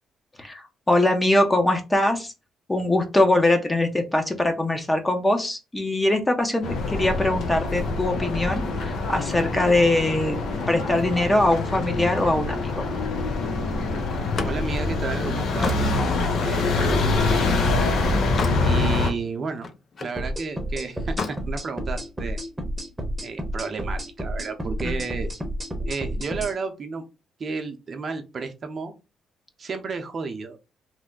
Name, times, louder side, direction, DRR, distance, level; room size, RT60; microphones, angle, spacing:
voice 1, 0.4-2.3 2.7-10.4 10.7-12.9, left 1 dB, 15° left, 5 dB, 0.8 m, -22 dB
sound 1, 6.6-19.1, left 3 dB, 70° left, 0.8 m, -25 dB
Slam, 14.1-17.5 18.0-18.7 19.1-20.2 21.0-21.4, left 4 dB, 45° left, 0.5 m, -33 dB
voice 2, 14.4-16.0 16.4-17.6 18.6-19.7 20.0-22.4 23.2-25.3 25.8-27.0 27.4-28.9 29.6-30.6, right 4 dB, 45° right, 6 dB, 0.6 m, -32 dB
sound 2, 20.2-26.5, equal, 15° right, 0.9 m, -30 dB
3.2 x 2.1 x 3.8 m, 0.28 s
cardioid pair, 90°, 0 cm